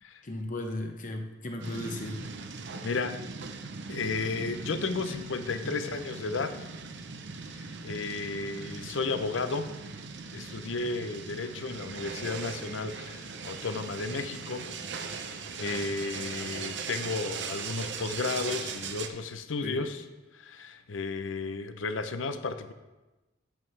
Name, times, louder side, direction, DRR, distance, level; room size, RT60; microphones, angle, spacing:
voice 1, 0.2-2.2 5.6-5.8 19.6-19.9, left 1 dB, 45° left, 4 dB, 1.0 m, -36 dB
sound 1, 1.6-19.1, right 5 dB, 65° right, 0.7 m, -39 dB
voice 2, 2.8-3.2 3.9-6.7 7.5-9.7 10.3-14.7 15.1-20.0 20.3-22.7, left 4 dB, 80° left, 10 dB, 0.6 m, -33 dB
9.2 x 8.1 x 3.3 m, 1.1 s
head